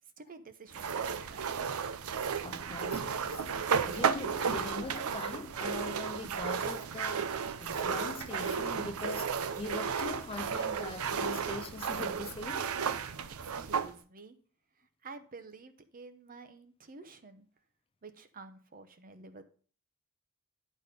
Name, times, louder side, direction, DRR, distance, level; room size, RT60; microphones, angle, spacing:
voice 1, 0.2-1.4 13.4-14.4 14.8-17.5 18.0-19.4, right 3 dB, 40° right, 0.8 m, -50 dB
sound 1, 0.7-13.9, right 6 dB, 80° right, 0.6 m, -33 dB
voice 2, 2.4-3.6 3.9-12.7, left 3 dB, 25° left, 0.4 m, -42 dB
10.5 x 4.2 x 5.0 m
head